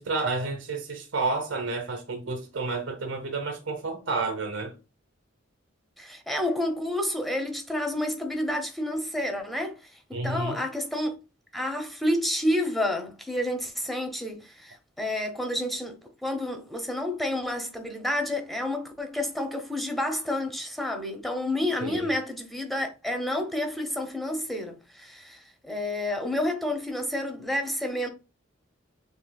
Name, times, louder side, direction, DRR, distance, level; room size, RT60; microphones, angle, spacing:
voice 1, 0.0-4.7 10.1-10.6 21.8-22.1, right 3 dB, 90° right, 0.9 m, -30 dB
voice 2, 6.0-11.2 11.5-15.9 16.2-28.1, left 1 dB, ahead, 0.9 m, -30 dB
6.9 x 3.3 x 2.3 m
head